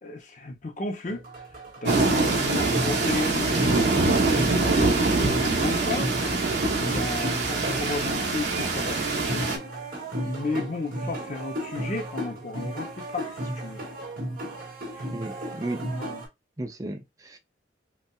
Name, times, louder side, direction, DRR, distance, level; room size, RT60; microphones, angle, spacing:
voice 1, 0.0-1.2 1.8-6.2 6.7-9.5 10.3-13.8 14.9-15.1 16.0-16.2, left 3 dB, 45° left, 0.7 m, -34 dB
sound 1, 1.1-16.3, right 1 dB, 50° right, 1.7 m, -34 dB
sound 2, 1.8-9.6, right 3 dB, 70° right, 1.0 m, -24 dB
voice 2, 15.1-15.8 16.6-17.4, right 2 dB, 20° right, 0.5 m, -34 dB
5.4 x 2.3 x 2.3 m
head